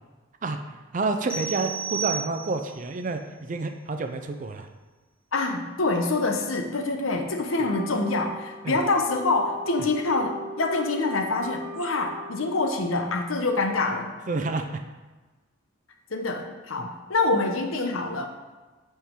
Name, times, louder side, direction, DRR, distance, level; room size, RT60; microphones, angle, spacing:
voice 1, 0.9-4.7 8.6-8.8 14.3-14.8 16.8-16.9, right 3 dB, 40° right, 6 dB, 0.4 m, -29 dB
sound 1, 1.3-2.8, right 6 dB, 5° left, 0.8 m, -32 dB
voice 2, 5.3-14.1 16.1-18.3, left 3 dB, 80° left, 4 dB, 0.8 m, -26 dB
Wind instrument woodwind instrument, 7.4-13.1, equal, 40° left, 1.0 m, -40 dB
9.0 x 4.3 x 3.7 m, 1.2 s
head